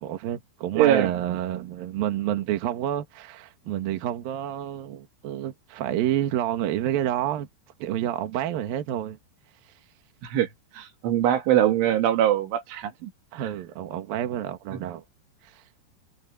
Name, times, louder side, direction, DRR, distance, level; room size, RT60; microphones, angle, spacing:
voice 1, 0.0-7.5 7.8-9.2 13.3-15.0 15.4-15.6, right 12 dB, 60° right, 2.8 m, -29 dB
voice 2, 0.8-1.1 10.2-10.5 10.7-13.1 14.7-14.8, right 11 dB, 80° right, 4.5 m, -22 dB
omnidirectional pair, 5.5 m